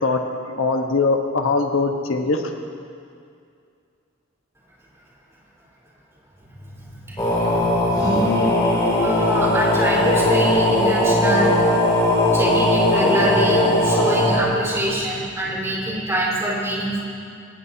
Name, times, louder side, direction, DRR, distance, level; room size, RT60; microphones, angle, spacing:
voice 1, 0.0-2.5, left 3 dB, 90° left, 3 dB, 1.3 m, -21 dB
voice 2, 7.0-8.0 9.0-11.5 12.3-17.0, right 1 dB, 15° right, -6 dB, 4.5 m, -25 dB
sound 1, 7.2-14.4, left 1 dB, 20° left, 3.0 m, -18 dB
22.5 x 18.0 x 2.9 m, 2.4 s
head